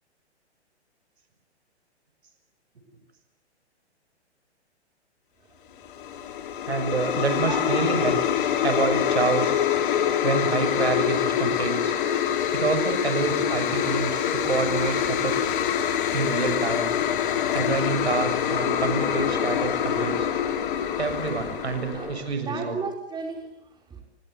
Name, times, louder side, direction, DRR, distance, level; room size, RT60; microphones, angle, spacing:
voice 1, 5.4-6.7 7.4-7.9 21.3-21.6 21.9-24.0, right 4 dB, 10° right, 4.9 m, -37 dB
sound 1, 5.8-22.3, left 9 dB, 45° left, 3.4 m, -25 dB
voice 2, 6.6-8.2 8.6-9.6 10.2-11.9 12.5-15.5 16.1-16.9 17.5-20.3 21.0-22.8, right 4 dB, 70° right, 6.8 m, -27 dB
30.0 x 24.5 x 8.0 m
figure-of-eight pair, 120°, 34 cm